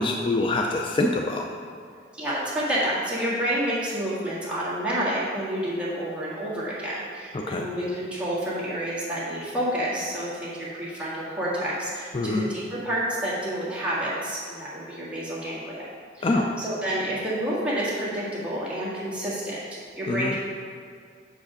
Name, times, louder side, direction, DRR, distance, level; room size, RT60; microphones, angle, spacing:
voice 1, 0.0-1.5 7.3-7.7 12.1-12.5 16.2-16.5 20.1-20.4, left 2 dB, 30° left, 2 dB, 0.3 m, -25 dB
voice 2, 2.1-15.9 16.1-19.6 20.0-20.4, right 1 dB, 5° right, -9 dB, 1.6 m, -29 dB
6.5 x 4.8 x 5.1 m, 2.2 s
head